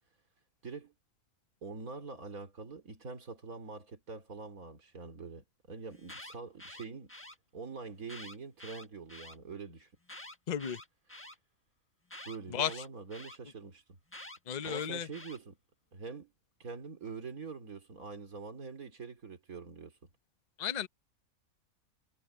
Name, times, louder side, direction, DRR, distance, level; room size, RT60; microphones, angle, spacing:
voice 1, 0.6-0.9 1.6-7.1 7.5-9.9 12.2-14.0 14.6-15.6 15.9-16.3 16.6-20.0, right 4 dB, 90° right, 3.4 m, -44 dB
Alarm, 5.9-7.4 8.0-9.4 10.0-11.4 12.1-13.4 14.1-15.4, left 1 dB, 10° left, 1.2 m, -48 dB
voice 2, 10.5-10.8 12.5-12.8 14.5-15.1 20.6-20.9, left 9 dB, 35° left, 0.8 m, -34 dB
omnidirectional pair, 1.5 m